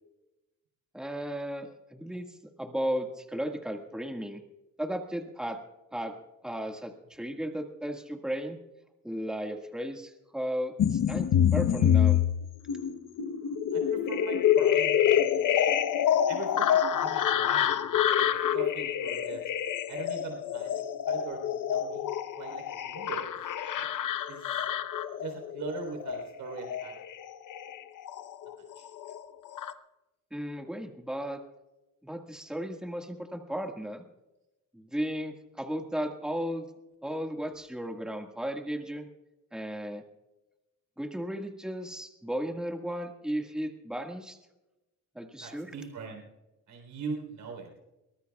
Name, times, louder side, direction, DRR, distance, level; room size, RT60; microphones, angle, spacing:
voice 1, 0.9-4.4 4.8-5.6 5.9-6.1 6.4-8.6 9.0-12.2 30.3-31.4 32.0-34.0 34.7-36.7 37.0-39.1 39.5-40.0 41.0-44.4 45.2-45.7, equal, ahead, 3 dB, 1.8 m, -35 dB
sound 1, 10.8-28.5 28.9-29.7, left 9 dB, 75° left, 1.0 m, -27 dB
voice 2, 13.7-15.4 16.3-16.7 16.9-18.3 18.5-19.4 19.9-20.7 21.1-21.4 21.7-22.1 22.4-23.5 24.3-24.5 25.2-26.9 28.6-28.9 45.4-46.2 46.7-47.7, right 4 dB, 85° right, 3 dB, 3.9 m, -40 dB
23.5 x 19.0 x 2.4 m, 1.0 s
cardioid pair, 95°, 32 cm